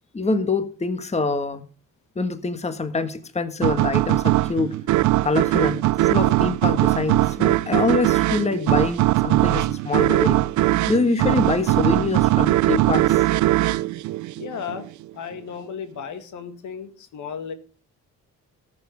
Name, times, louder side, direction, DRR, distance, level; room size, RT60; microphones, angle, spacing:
voice 1, 0.1-1.6 2.1-4.7 5.2-10.4 10.9-13.2 13.7-13.8, left 3 dB, 20° left, 10 dB, 1.4 m, -25 dB
sound 1, 3.6-14.9, right 16 dB, 75° right, 0.5 m, -20 dB
voice 2, 14.4-14.9 15.1-17.5, left 7 dB, 75° left, 9 dB, 2.0 m, -34 dB
13.5 x 7.3 x 6.5 m, 0.38 s
cardioid pair, 90°, 30 cm